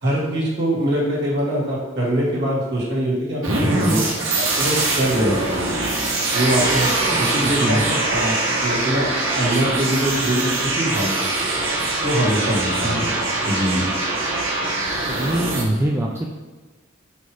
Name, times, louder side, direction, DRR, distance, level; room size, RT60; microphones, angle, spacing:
voice 1, 0.0-5.7 6.3-6.9 7.2-8.4 8.6-11.5 12.0-13.2 13.4-13.9, right 1 dB, 55° right, -5 dB, 1.8 m, -23 dB
sound 1, 3.4-15.6, right 2 dB, 90° right, 1.2 m, -22 dB
voice 2, 7.1-7.8 12.8-13.1 15.1-16.3, right 1 dB, 15° right, -1 dB, 0.3 m, -24 dB
4.7 x 4.1 x 4.8 m, 1.2 s
head